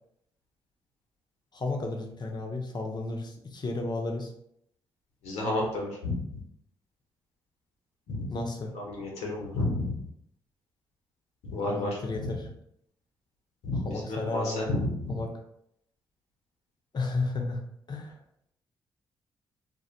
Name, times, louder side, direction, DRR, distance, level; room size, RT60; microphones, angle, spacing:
voice 1, 1.5-4.3 8.3-8.7 11.7-12.5 13.8-14.6 15.1-15.3 16.9-17.6 17.9-18.1, left 3 dB, 40° left, 2 dB, 0.6 m, -32 dB
voice 2, 5.2-6.2 8.1-8.3 8.7-10.0 11.4-12.3 13.6-15.1, left 2 dB, 70° left, -2 dB, 0.8 m, -31 dB
2.2 x 2.2 x 2.7 m, 0.72 s
hypercardioid pair, 40°, 12 cm